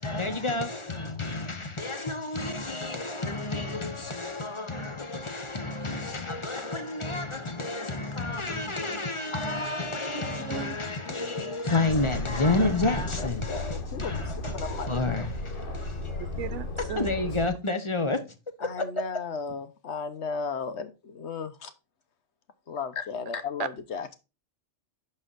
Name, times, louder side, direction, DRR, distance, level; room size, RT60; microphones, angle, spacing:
voice 1, 0.0-16.3 16.9-18.2, left 2 dB, 25° left, 1.0 m, -30 dB
voice 2, 10.2-11.0 12.6-12.7 16.2-17.1, right 9 dB, 85° right, 1.0 m, -37 dB
voice 3, 11.0-11.6 11.9-12.1 13.1-15.5 18.6-21.7 22.7-24.1, left 5 dB, 70° left, 1.2 m, -36 dB
Aircraft, 11.9-17.5, left 2 dB, 50° left, 1.4 m, -34 dB
11.5 x 4.3 x 2.5 m
omnidirectional pair, 1.2 m